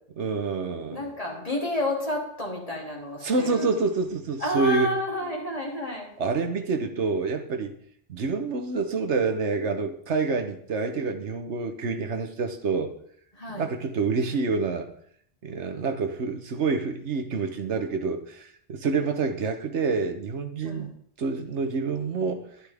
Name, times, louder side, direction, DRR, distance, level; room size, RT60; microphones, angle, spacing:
voice 1, 0.2-1.0 3.2-4.9 6.2-7.7 8.1-12.9 13.5-14.9 15.4-20.9 21.2-22.4, right 4 dB, 75° right, 6 dB, 1.3 m, -27 dB
voice 2, 0.9-3.7 4.4-6.1 13.3-13.7 20.6-20.9, left 1 dB, 30° left, -2 dB, 3.0 m, -30 dB
12.0 x 11.0 x 3.5 m, 0.63 s
omnidirectional pair, 1.2 m